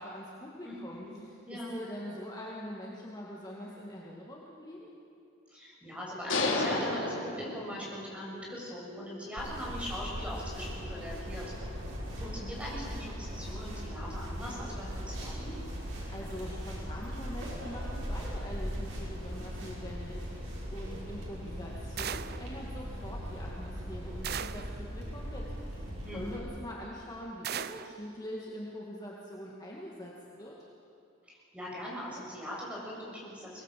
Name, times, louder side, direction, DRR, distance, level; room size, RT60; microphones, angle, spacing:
voice 1, 0.0-4.9 15.6-15.8 16.1-25.8 26.1-30.5, equal, 20° left, -4 dB, 2.1 m, -44 dB
voice 2, 0.6-1.2 1.4-1.8 5.5-11.5 12.2-15.6 26.0-26.4 31.3-33.6, equal, 5° right, -5 dB, 6.8 m, -41 dB
sound 1, 6.3-8.1, left 2 dB, 75° left, 2.9 m, -31 dB
sound 2, 9.4-26.4, equal, 80° right, 6.0 m, -39 dB
sound 3, 22.0-22.5 24.2-24.8 27.4-28.0, right 9 dB, 55° right, 0.6 m, -37 dB
24.0 x 19.5 x 7.6 m, 2.5 s
head